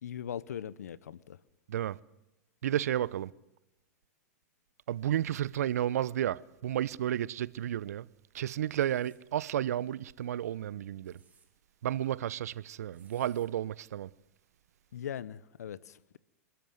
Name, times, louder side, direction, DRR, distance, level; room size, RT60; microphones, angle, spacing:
voice 1, 0.0-1.4 14.9-16.2, left 9 dB, 75° left, 0.9 m, -40 dB
voice 2, 2.6-3.3 4.9-8.1 8.3-11.2 11.8-14.1, right 11 dB, 70° right, 0.8 m, -32 dB
sound 1, 8.7-9.2 10.8-11.5 12.9-13.5, right 5 dB, 15° right, 3.9 m, -65 dB
28.0 x 13.0 x 9.4 m
hypercardioid pair, 100°, 9 cm